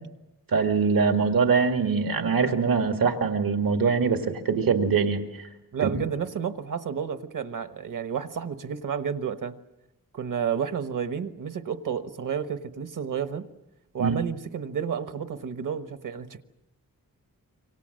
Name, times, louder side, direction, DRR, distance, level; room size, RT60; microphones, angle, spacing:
voice 1, 0.5-5.5 5.8-5.9 14.0-14.2, right 5 dB, 85° right, 4 dB, 2.1 m, -23 dB
voice 2, 5.7-9.5 10.1-13.5 13.9-16.4, right 7 dB, 65° right, 9 dB, 1.3 m, -31 dB
27.0 x 25.0 x 6.5 m, 0.95 s
wide cardioid pair, 155°, 34 cm